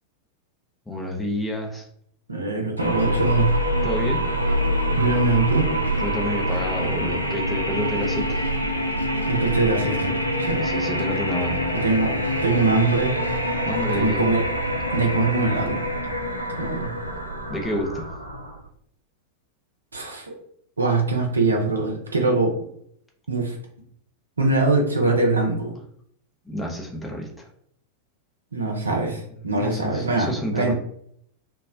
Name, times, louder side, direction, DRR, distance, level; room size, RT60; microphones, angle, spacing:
voice 1, 0.9-1.9 3.8-4.2 6.0-8.5 10.6-11.7 13.7-14.2 17.5-18.1 26.5-27.5 29.4-30.7, equal, 10° left, 0 dB, 0.6 m, -29 dB
voice 2, 2.3-3.5 5.0-5.7 9.3-10.6 11.7-12.1 12.4-13.1 13.9-14.4 14.9-15.8 16.6-16.9 19.9-20.3 20.8-22.6 23.3-23.6 24.4-25.7 28.5-30.7, right 3 dB, 75° right, 1 dB, 0.6 m, -22 dB
sound 1, 2.8-18.7, equal, 85° left, 0.3 m, -25 dB
2.2 x 2.0 x 3.6 m, 0.67 s
figure-of-eight pair, 90°, 0 cm